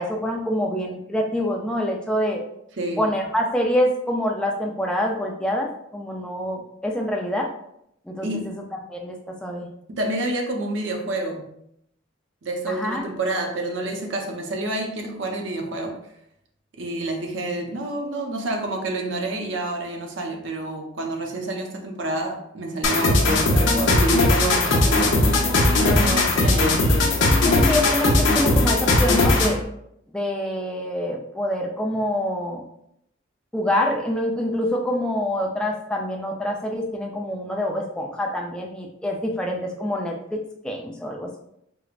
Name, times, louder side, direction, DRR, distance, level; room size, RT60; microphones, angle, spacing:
voice 1, 0.0-2.4 3.0-7.5 8.1-8.5 8.9-9.2 9.4-9.7 12.7-13.1 23.3-23.9 27.4-29.6 30.1-32.6 33.5-40.4 40.6-41.3, left 1 dB, 5° left, 0 dB, 0.3 m, -26 dB
voice 2, 2.8-3.1 8.2-8.5 9.9-11.5 12.4-16.0 16.8-26.8, right 2 dB, 65° right, 2 dB, 0.6 m, -28 dB
sound 1, 22.8-29.6, left 2 dB, 70° left, 0.7 m, -19 dB
4.5 x 2.0 x 2.4 m, 0.76 s
head